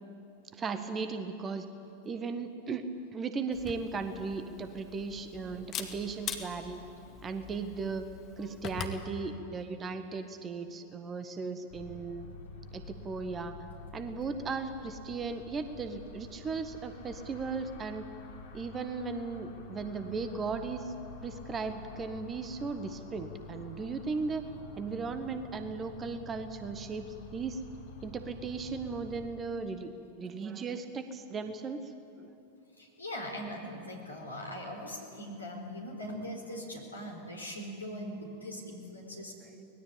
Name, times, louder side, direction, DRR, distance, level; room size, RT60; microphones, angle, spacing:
voice 1, 0.5-1.7 2.0-2.8 3.1-6.8 7.2-8.1 8.4-12.3 12.7-13.6 13.9-18.1 18.5-20.9 21.2-24.4 24.8-27.1 27.3-27.6 28.0-29.9 30.2-31.8 32.2-32.3 39.5-39.6, right 4 dB, 20° right, 9 dB, 1.4 m, -36 dB
Camera, 3.5-9.0, left 7 dB, 30° left, 2.1 m, -43 dB
sound 1, 11.7-29.3, left 3 dB, 55° left, 3.5 m, -48 dB
voice 2, 32.8-39.3, equal, 80° left, 0 dB, 4.3 m, -41 dB
24.5 x 20.5 x 8.6 m, 2.7 s
figure-of-eight pair, 90°, 0 cm